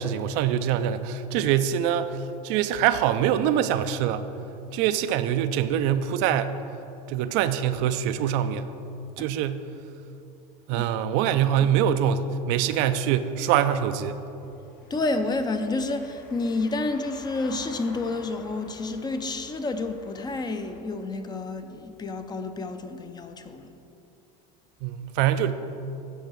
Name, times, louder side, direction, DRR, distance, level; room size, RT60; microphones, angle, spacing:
voice 1, 0.0-4.2 4.7-6.6 7.1-8.7 9.2-9.7 10.7-14.2 24.8-25.5, right 9 dB, 60° right, 11 dB, 0.5 m, -24 dB
Car passing by / Engine, 14.0-20.8, left 3 dB, 60° left, 1.3 m, -49 dB
voice 2, 14.9-23.7, left 2 dB, 20° left, 8 dB, 0.5 m, -29 dB
9.1 x 4.7 x 6.2 m, 2.8 s
supercardioid pair, 105°, 21 cm